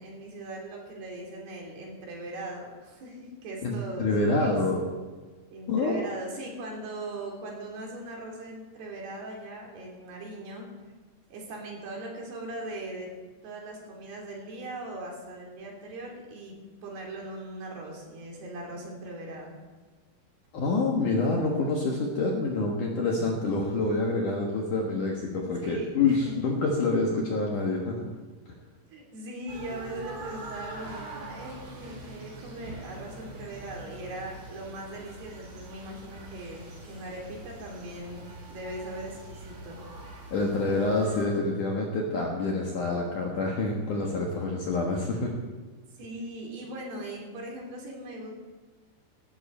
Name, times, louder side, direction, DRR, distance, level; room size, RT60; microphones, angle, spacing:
voice 1, 0.0-4.5 5.5-10.7 11.3-13.1 13.4-19.5 25.6-26.3 28.9-39.8 46.0-48.3, right 1 dB, 60° right, -1 dB, 4.8 m, -40 dB
voice 2, 3.6-4.8 5.7-6.1 20.5-28.1 28.5-28.6 40.3-45.3, left 3 dB, 60° left, -1 dB, 2.3 m, -27 dB
sound 1, 29.5-41.3, right 2 dB, 85° right, 7.5 m, -43 dB
18.5 x 12.5 x 4.4 m, 1.4 s
omnidirectional pair, 5.3 m